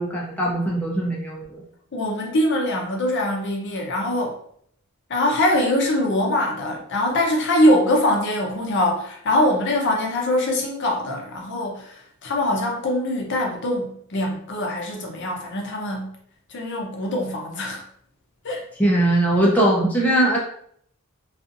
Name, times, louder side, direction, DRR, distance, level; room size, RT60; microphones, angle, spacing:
voice 1, 0.0-1.6 18.8-20.4, right 1 dB, 5° left, -5 dB, 0.4 m, -20 dB
voice 2, 1.9-4.4 5.1-16.2 16.5-17.8 18.4-18.6, left 1 dB, 55° left, 0 dB, 0.6 m, -23 dB
2.6 x 2.4 x 2.5 m, 0.66 s
head